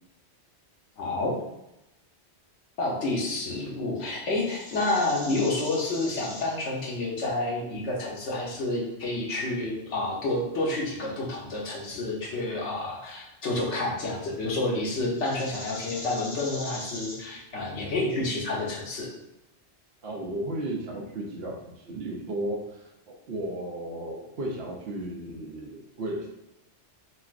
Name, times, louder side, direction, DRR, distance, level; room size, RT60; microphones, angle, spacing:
voice 1, 1.0-1.4 2.8-19.1, left 2 dB, 85° left, -3 dB, 1.1 m, -29 dB
sound 1, 4.3-6.8 8.2-8.6 10.6-11.2 12.3-12.8 15.0-18.0, left 1 dB, 70° left, 1.5 m, -42 dB
voice 2, 20.0-26.3, right 1 dB, 65° right, 0 dB, 0.8 m, -34 dB
4.1 x 2.0 x 2.4 m, 0.90 s
omnidirectional pair, 1.2 m